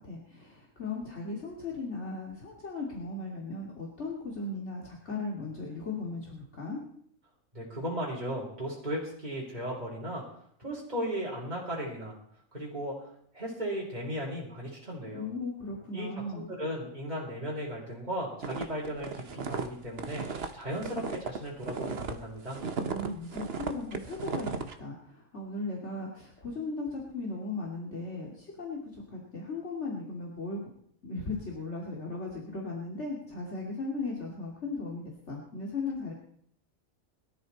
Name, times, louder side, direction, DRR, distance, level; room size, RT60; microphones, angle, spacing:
voice 1, 0.0-6.8 15.1-16.5 22.7-30.6 31.0-36.1, left 3 dB, 55° left, -2 dB, 2.9 m, -37 dB
voice 2, 7.5-10.2 10.6-12.2 12.5-12.9 13.3-15.3 15.9-16.1 16.3-20.3 20.5-22.6, equal, 30° right, -4 dB, 4.0 m, -36 dB
sound 1, 18.4-22.1 22.5-24.7, right 5 dB, 50° right, 1.2 m, -35 dB
22.0 x 13.5 x 4.2 m, 0.66 s
omnidirectional pair, 1.4 m